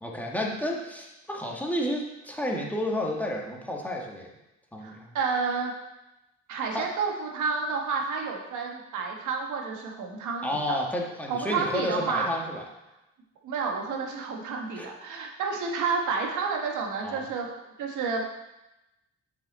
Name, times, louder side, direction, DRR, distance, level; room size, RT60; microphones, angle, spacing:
voice 1, 0.0-4.3 4.7-5.1 6.7-6.9 10.4-12.6 14.8-14.9 17.0-17.3, left 1 dB, 5° left, -1 dB, 1.3 m, -31 dB
voice 2, 4.8-5.7 6.5-10.8 11.3-12.3 13.4-17.5 17.8-18.2, right 5 dB, 80° right, 1 dB, 1.3 m, -30 dB
7.0 x 5.0 x 4.1 m, 0.95 s
cardioid pair, 90°, 30 cm